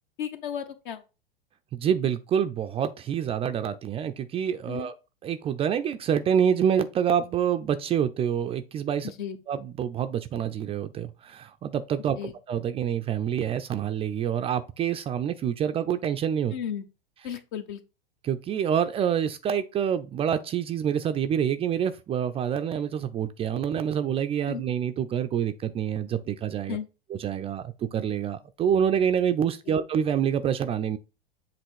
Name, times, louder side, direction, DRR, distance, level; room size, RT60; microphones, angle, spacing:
voice 1, 0.2-1.0 4.7-4.9 9.0-9.4 12.2-12.3 16.5-16.8 17.2-17.8 24.4-24.6 26.7-26.9 29.7-29.8, left 8 dB, 55° left, 1.1 m, -34 dB
voice 2, 1.7-4.9 5.2-9.1 9.5-16.5 18.2-26.8 27.1-31.0, right 8 dB, 20° right, 0.5 m, -27 dB
7.7 x 3.0 x 4.7 m
figure-of-eight pair, 95°, 29 cm